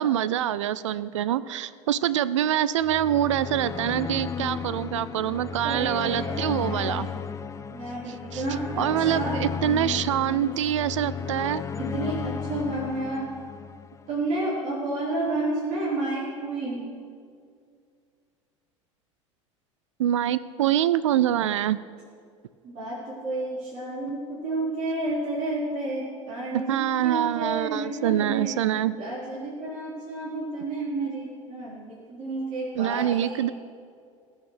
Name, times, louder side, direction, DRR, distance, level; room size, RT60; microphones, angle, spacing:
voice 1, 0.0-7.1 8.3-8.4 8.8-11.6 20.0-21.8 26.5-28.9 32.8-33.5, right 11 dB, 70° right, 17 dB, 0.5 m, -25 dB
sound 1, 2.8-14.2, left 6 dB, 20° left, 0.6 m, -34 dB
voice 2, 5.6-7.2 7.7-9.4 10.4-10.5 11.8-13.3 14.1-16.8 22.6-28.5 29.0-33.5, right 2 dB, 45° right, -7 dB, 4.0 m, -31 dB
18.5 x 6.7 x 6.4 m, 2.2 s
figure-of-eight pair, 75°, 16 cm